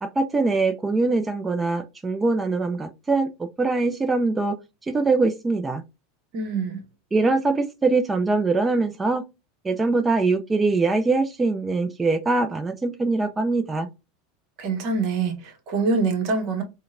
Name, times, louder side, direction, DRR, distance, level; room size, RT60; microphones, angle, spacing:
voice 1, 0.0-4.6 4.9-5.8 7.1-9.2 9.6-13.9, right 3 dB, 15° right, 0.4 m, -23 dB
voice 2, 6.3-6.8 14.6-16.6, right 4 dB, 55° right, 0.9 m, -25 dB
3.7 x 2.1 x 2.4 m
hypercardioid pair, 90°, 0 cm